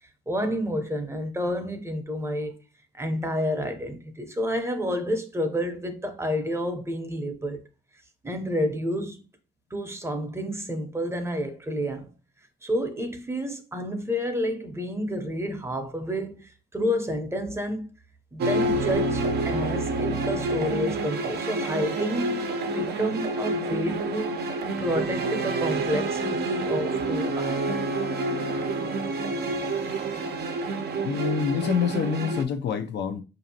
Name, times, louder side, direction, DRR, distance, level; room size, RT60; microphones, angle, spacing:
voice 1, 0.3-2.5 2.9-7.6 8.2-9.2 9.7-12.1 12.6-17.9 18.3-24.3 24.8-27.8 30.0-30.2, equal, 15° right, 0.7 m, -30 dB
sound 1, 18.4-32.4, right 2 dB, 55° right, 0.6 m, -28 dB
voice 2, 31.0-33.2, left 6 dB, 60° left, 0.5 m, -27 dB
4.9 x 2.6 x 2.8 m
cardioid pair, 90°, 20 cm